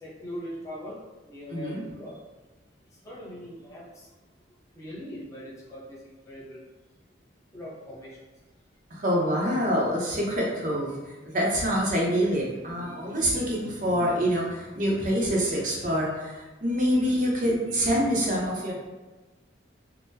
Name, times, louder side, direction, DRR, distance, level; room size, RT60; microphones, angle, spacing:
voice 1, 0.0-1.0 1.2-2.2 3.0-4.1 4.7-6.6 7.5-8.2, equal, 15° left, -7 dB, 0.8 m, -41 dB
voice 2, 1.5-1.8 8.9-10.9 11.2-18.7, equal, 45° right, -3 dB, 0.7 m, -26 dB
3.7 x 2.1 x 2.7 m, 1.2 s
head